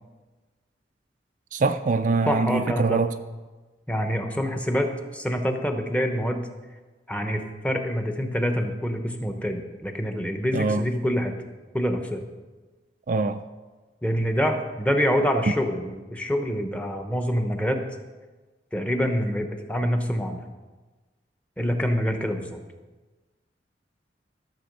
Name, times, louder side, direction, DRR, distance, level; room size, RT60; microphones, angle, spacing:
voice 1, 1.5-3.1 10.5-10.8 13.1-13.4, right 3 dB, 45° right, 8 dB, 0.4 m, -23 dB
voice 2, 2.3-3.0 3.9-6.5 7.1-11.3 11.7-12.3 14.0-17.8 18.7-20.4 21.6-22.6, equal, 10° left, 5 dB, 0.9 m, -26 dB
13.5 x 6.8 x 5.3 m, 1.3 s
head